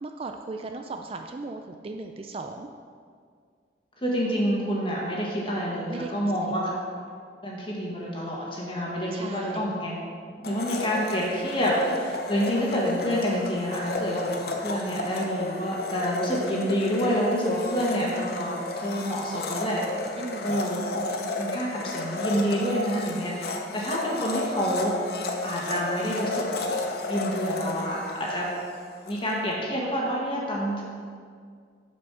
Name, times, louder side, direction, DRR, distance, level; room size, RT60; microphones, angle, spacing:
voice 1, 0.0-2.7 5.9-6.5 9.1-9.6 20.2-20.6, right 3 dB, 30° right, 4 dB, 0.3 m, -37 dB
voice 2, 4.0-6.7 7.4-10.0 10.4-19.8 20.4-21.0 21.4-26.4 27.1-28.5 29.1-30.8, equal, 30° left, -4 dB, 1.7 m, -28 dB
Domestic sounds home sounds, 10.4-29.2, left 2 dB, 55° left, 0.7 m, -33 dB
8.2 x 5.1 x 6.0 m, 2.1 s
head